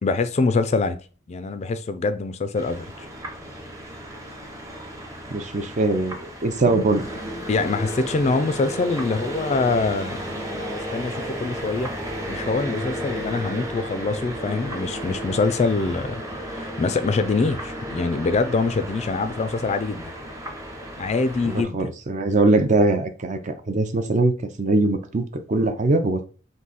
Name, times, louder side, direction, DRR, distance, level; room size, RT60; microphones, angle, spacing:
voice 1, 0.0-1.0 1.3-3.1 7.5-10.2 10.5-11.9 12.3-16.2 16.5-20.1 21.0-21.9, left 3 dB, 35° left, 0.4 m, -24 dB
sound 1, 2.6-21.6, right 1 dB, 15° right, 0.9 m, -33 dB
voice 2, 5.3-7.0 21.4-26.3, right 2 dB, 40° right, 0.5 m, -22 dB
3.8 x 2.7 x 4.1 m
head